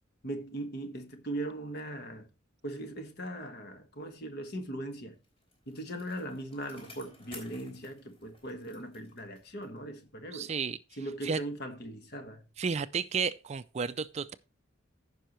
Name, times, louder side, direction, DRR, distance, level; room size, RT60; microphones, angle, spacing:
voice 1, 0.2-2.3 2.6-5.2 5.7-10.5 11.0-12.4, right 1 dB, 55° left, 1.5 m, -39 dB
Bicycle, 5.0-9.9 10.2-10.3, left 2 dB, 30° left, 3.3 m, -55 dB
voice 2, 10.3-10.8 11.2-11.4 12.6-14.3, right 5 dB, 35° right, 0.4 m, -32 dB
15.0 x 5.6 x 3.0 m
head